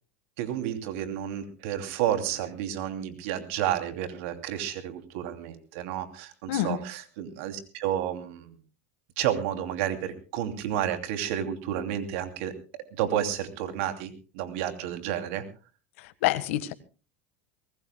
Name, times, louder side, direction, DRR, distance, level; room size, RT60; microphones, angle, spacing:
voice 1, 0.4-8.5 9.2-15.4, right 10 dB, 70° right, 7 dB, 2.9 m, -31 dB
voice 2, 6.5-6.8 16.0-16.7, left 14 dB, 75° left, 14 dB, 1.5 m, -27 dB
24.0 x 19.0 x 2.2 m, 0.35 s
supercardioid pair, 110°, 7 cm